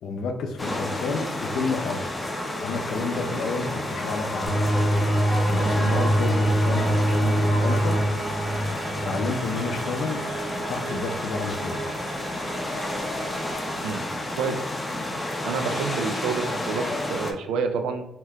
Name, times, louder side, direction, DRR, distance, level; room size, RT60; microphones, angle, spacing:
voice 1, 0.0-2.1 2.6-4.6 5.5-8.0 9.0-10.2 10.7-11.8, left 4 dB, 75° left, 5 dB, 0.5 m, -30 dB
sound 1, 0.6-17.3, left 1 dB, 20° left, 0.5 m, -31 dB
sound 2, 1.8-14.8, right 2 dB, 35° right, 0.7 m, -38 dB
sound 3, 4.4-9.8, right 1 dB, 55° left, 0.9 m, -24 dB
voice 2, 15.4-18.0, right 5 dB, 90° right, 6 dB, 0.4 m, -28 dB
2.8 x 2.2 x 3.5 m, 0.86 s
cardioid pair, 90°, 0 cm